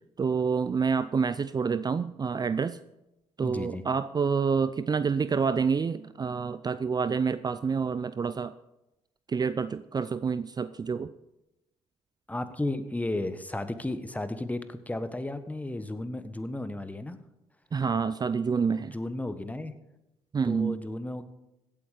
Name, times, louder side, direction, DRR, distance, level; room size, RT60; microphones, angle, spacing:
voice 1, 0.2-2.8 3.4-8.5 9.3-11.1 17.7-19.0 20.3-20.8, right 5 dB, 35° right, 14 dB, 0.5 m, -28 dB
voice 2, 3.4-3.8 12.3-17.2 18.8-19.7 20.4-21.2, left 1 dB, 10° left, 10 dB, 1.4 m, -34 dB
16.5 x 8.7 x 5.1 m, 0.94 s
supercardioid pair, 55°, 13 cm